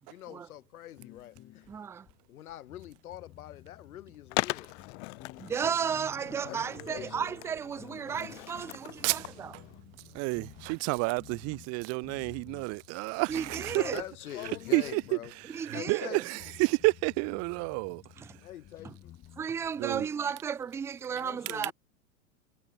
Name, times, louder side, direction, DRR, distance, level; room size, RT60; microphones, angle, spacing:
voice 1, 0.1-1.3 2.3-4.7 6.4-7.4 7.9-8.0 13.7-15.3 15.7-16.2 18.4-18.9 21.1-21.7, left 13 dB, 75° left, 2.4 m, -43 dB
sound 1, 0.9-15.9 16.4-20.0, left 13 dB, 30° left, 3.3 m, -53 dB
voice 2, 1.7-2.1 5.4-9.5 13.3-14.0 15.5-16.2 18.2-18.3 18.8-18.9 19.4-21.7, right 7 dB, 5° right, 0.4 m, -34 dB
Skateboard, 4.3-9.8, left 25 dB, 50° left, 0.8 m, -39 dB
Telephone, 5.5-11.7, right 16 dB, 65° right, 2.2 m, -56 dB
voice 3, 9.0-9.6 10.1-14.0 14.7-15.0 15.6-18.0 19.8-20.1, right 29 dB, 35° right, 0.8 m, -30 dB
hypercardioid pair, 115°, 44 cm